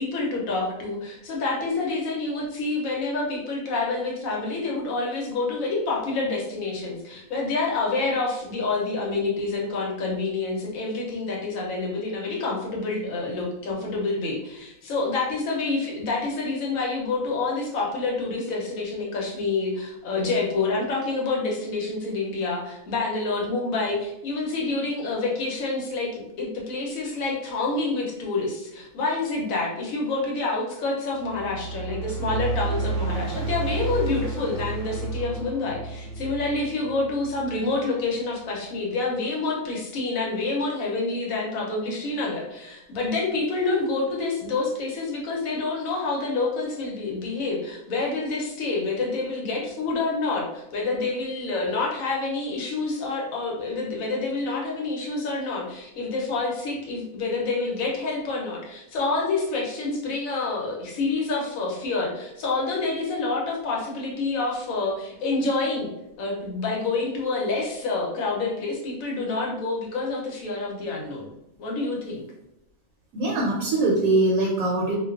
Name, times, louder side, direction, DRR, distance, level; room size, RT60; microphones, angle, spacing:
voice 1, 0.0-65.9 66.2-71.3 71.6-72.3, left 3 dB, 70° left, -2 dB, 1.0 m, -27 dB
sound 1, 31.2-37.8, right 3 dB, 90° right, 1.1 m, -31 dB
voice 2, 73.1-74.9, right 2 dB, 75° right, -3 dB, 1.0 m, -22 dB
2.5 x 2.3 x 2.3 m, 0.84 s
omnidirectional pair, 1.6 m